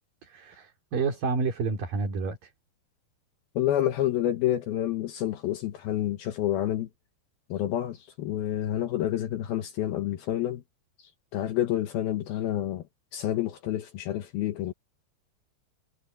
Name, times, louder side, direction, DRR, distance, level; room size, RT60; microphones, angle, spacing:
voice 1, 0.2-2.5, right 4 dB, 50° right, 5.4 m, -30 dB
voice 2, 3.6-6.9 7.5-10.6 11.3-12.8 13.1-14.7, left 12 dB, 70° left, 2.5 m, -28 dB
omnidirectional pair, 5.3 m